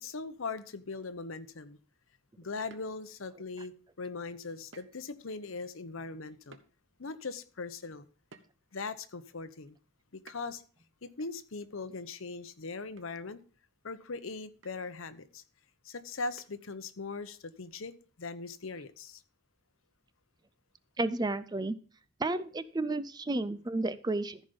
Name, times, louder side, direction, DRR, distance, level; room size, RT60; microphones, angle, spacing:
voice 1, 0.0-1.8 2.4-6.6 7.0-8.1 8.7-9.8 10.2-10.6 11.0-13.4 13.8-15.4 15.8-19.2, left 4 dB, 75° left, 0.9 m, -40 dB
sound 1, 2.7-3.4 4.7-5.1 5.5-5.6 6.5-6.7 8.3-8.8 10.3-10.7 12.4-12.6 13.0-13.1 13.4-13.5 14.6-14.9 16.4-16.8, right 4 dB, 65° right, 1.0 m, -56 dB
voice 2, 21.0-21.8 22.2-24.4, right 2 dB, 20° right, 0.4 m, -32 dB
14.0 x 5.2 x 5.2 m
head